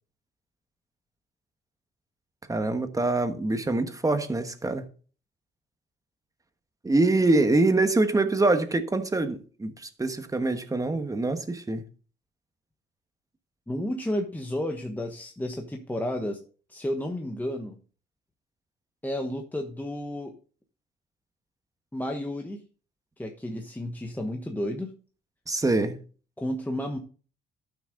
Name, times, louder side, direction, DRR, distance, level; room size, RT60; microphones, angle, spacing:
voice 1, 2.5-4.9 6.8-11.8 25.5-26.0, right 2 dB, 15° right, 1.3 m, -24 dB
voice 2, 13.7-16.4 16.7-17.8 19.0-20.3 21.9-22.6 23.2-24.9 26.4-27.0, left 1 dB, 10° left, 1.2 m, -32 dB
12.0 x 6.2 x 3.8 m
cardioid pair, 90°, 20 cm